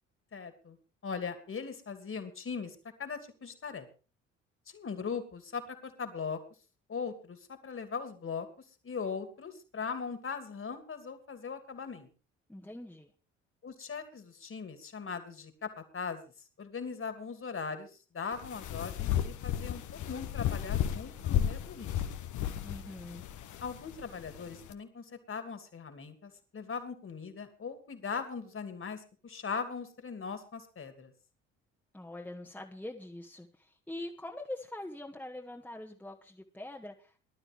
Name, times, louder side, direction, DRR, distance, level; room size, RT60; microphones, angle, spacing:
voice 1, 0.3-0.8 1.0-3.9 4.7-6.4 6.9-8.5 8.8-12.1 13.6-16.2 16.6-22.2 23.6-31.1, left 5 dB, 35° left, 9 dB, 2.7 m, -40 dB
voice 2, 12.5-13.1 22.6-23.2 31.9-37.2, left 1 dB, 5° left, 1 dB, 1.7 m, -43 dB
sound 1, 18.3-24.7, left 10 dB, 50° left, 1.2 m, -34 dB
19.5 x 12.0 x 3.5 m, 0.35 s
figure-of-eight pair, 50°, 38 cm